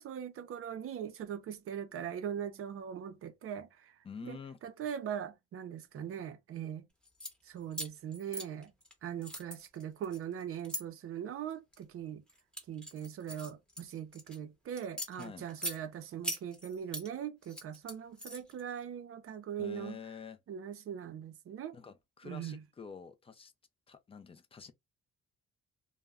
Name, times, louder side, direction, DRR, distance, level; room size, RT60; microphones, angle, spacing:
voice 1, 0.0-4.0 4.2-6.9 7.5-8.7 9.0-12.2 12.7-20.0 20.5-21.7 22.2-22.6, right 9 dB, 45° right, 0.5 m, -41 dB
voice 2, 4.0-4.6 15.2-15.5 19.6-20.4 21.7-23.5 23.9-24.7, left 5 dB, 20° left, 0.3 m, -47 dB
sound 1, 7.0-7.3 7.7-8.9 9.2-10.8 11.5-11.8 12.3-14.4 14.8-15.8 16.2-17.1 17.4-18.6, equal, 5° left, 0.8 m, -41 dB
2.2 x 2.0 x 3.5 m
cardioid pair, 125°, 30 cm